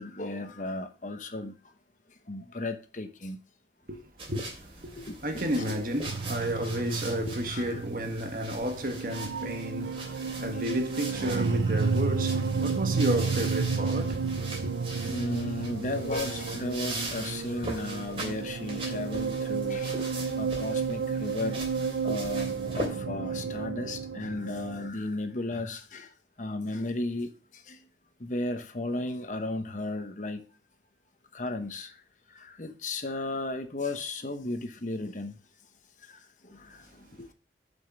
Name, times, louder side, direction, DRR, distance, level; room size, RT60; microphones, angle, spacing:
voice 1, 0.0-1.7 2.1-3.4 5.0-5.8 6.6-6.7 7.3-7.8 8.1-8.4 10.5-10.6 11.7-11.9 15.1-21.7 22.0-27.9 28.2-30.5 31.3-32.0 32.3-35.4 36.0-37.3, left 2 dB, 45° left, 1.0 m, -35 dB
sound 1, 4.2-22.9, right 2 dB, 30° right, 2.9 m, -41 dB
voice 2, 5.2-14.7, equal, 50° right, 1.4 m, -32 dB
sound 2, 6.1-24.9, right 5 dB, 90° right, 0.6 m, -32 dB
7.2 x 5.4 x 7.2 m
head